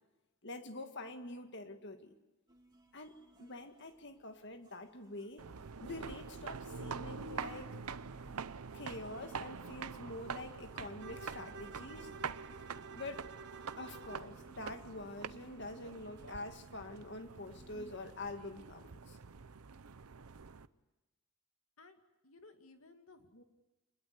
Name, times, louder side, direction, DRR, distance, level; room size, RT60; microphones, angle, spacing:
voice 1, 0.4-2.2 2.9-5.4 5.8-7.8 8.7-12.1 12.9-13.3 13.8-19.2, left 2 dB, 55° left, 7 dB, 2.0 m, -46 dB
sound 1, 2.5-17.9, right 1 dB, 20° right, 3.2 m, -65 dB
sound 2, 5.4-20.7, right 5 dB, 85° right, 0.8 m, -46 dB
Bowed string instrument, 11.0-14.4, right 4 dB, 55° right, 1.4 m, -51 dB
voice 2, 21.8-23.4, left 3 dB, 70° left, 6 dB, 2.3 m, -59 dB
26.5 x 21.0 x 8.1 m, 1.1 s
head